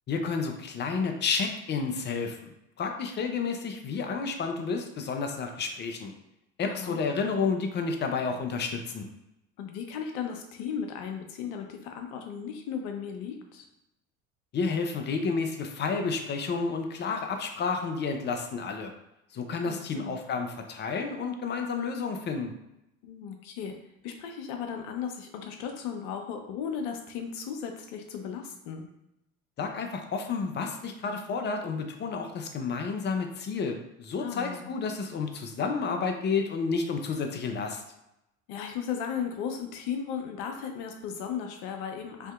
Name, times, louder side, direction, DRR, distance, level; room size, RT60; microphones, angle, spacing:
voice 1, 0.1-2.5 2.8-6.1 6.6-9.1 14.5-18.9 19.3-22.5 29.6-37.8, left 5 dB, 25° left, 4 dB, 0.4 m, -31 dB
voice 2, 6.7-7.0 9.6-13.7 19.6-20.2 23.0-23.7 24.0-28.9 34.2-34.7 38.5-42.3, left 7 dB, 60° left, 4 dB, 0.7 m, -36 dB
3.4 x 2.7 x 2.3 m, 0.85 s
hypercardioid pair, 70°, 41 cm